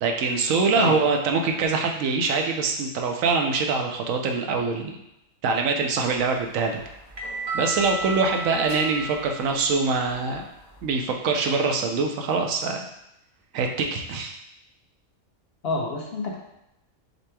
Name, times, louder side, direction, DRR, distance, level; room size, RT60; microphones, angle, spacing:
voice 1, 0.0-5.0 5.4-6.8 7.5-10.4 10.8-12.9 13.5-14.4, right 4 dB, 80° right, 3 dB, 1.0 m, -24 dB
sound 1, 6.1-10.9, right 2 dB, 35° right, 0.8 m, -35 dB
voice 2, 15.6-16.4, left 3 dB, 60° left, 0 dB, 0.8 m, -27 dB
6.6 x 3.1 x 2.2 m, 0.84 s
omnidirectional pair, 1.4 m